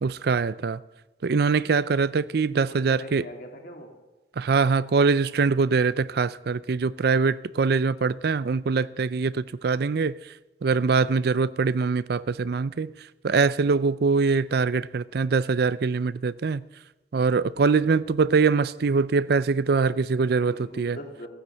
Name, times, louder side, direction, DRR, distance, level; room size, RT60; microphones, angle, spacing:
voice 1, 0.0-0.8 1.2-3.2 4.4-10.2 10.6-12.9 13.2-16.6 17.1-21.0, right 4 dB, 60° right, 0.4 m, -23 dB
voice 2, 2.7-4.0 20.5-21.3, equal, 55° left, 2.5 m, -41 dB
15.5 x 10.0 x 7.8 m
head